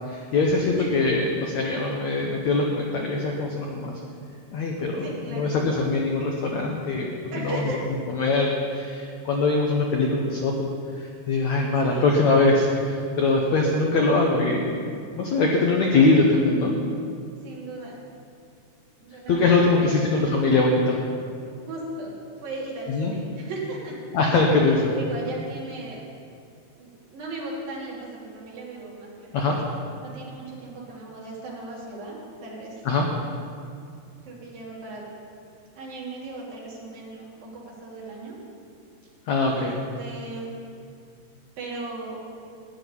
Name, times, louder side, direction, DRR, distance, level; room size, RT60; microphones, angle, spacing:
voice 1, 0.1-3.9 4.5-7.8 8.1-10.7 11.0-14.7 15.2-16.7 19.3-21.0 22.9-23.1 24.1-24.9 29.3-29.6 32.8-33.1 39.3-39.7, left 3 dB, 75° left, 0 dB, 1.7 m, -22 dB
voice 2, 5.0-5.5 7.3-8.0 11.9-12.2 17.4-18.0 19.0-20.4 21.7-22.1 22.4-23.9 24.8-26.0 26.8-29.5 30.0-32.8 34.2-35.1 35.7-37.3 37.5-38.4 39.5-39.7 40.0-40.5 41.6-42.2, right 2 dB, 60° right, -5 dB, 4.3 m, -37 dB
14.0 x 6.4 x 9.9 m, 2.4 s
omnidirectional pair, 4.7 m